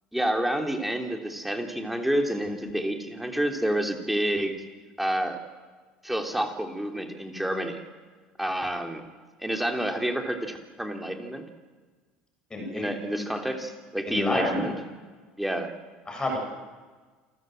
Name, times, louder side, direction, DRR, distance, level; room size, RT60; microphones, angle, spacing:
voice 1, 0.1-4.6 5.0-5.4 6.0-7.8 8.4-9.0 9.4-11.4 12.7-14.7 15.4-15.7, right 1 dB, 5° right, 4 dB, 3.3 m, -29 dB
voice 2, 12.5-12.9 14.1-14.7 16.1-16.4, left 1 dB, 20° left, 1 dB, 7.3 m, -28 dB
28.0 x 14.0 x 7.9 m, 1.4 s
hypercardioid pair, 80°, 4 cm